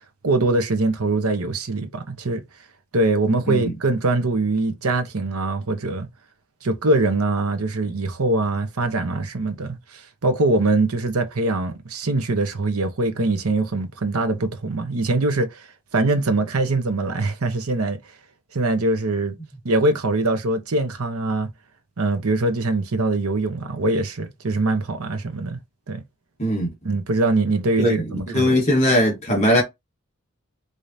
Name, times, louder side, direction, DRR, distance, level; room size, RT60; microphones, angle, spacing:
voice 1, 0.2-2.4 2.9-6.1 6.6-15.6 15.9-18.0 18.5-19.3 19.6-21.5 22.0-25.6 25.9-26.0 26.8-28.5, right 2 dB, 80° right, 0.9 m, -22 dB
voice 2, 28.3-29.6, equal, 30° left, 1.3 m, -19 dB
4.9 x 2.8 x 2.7 m
head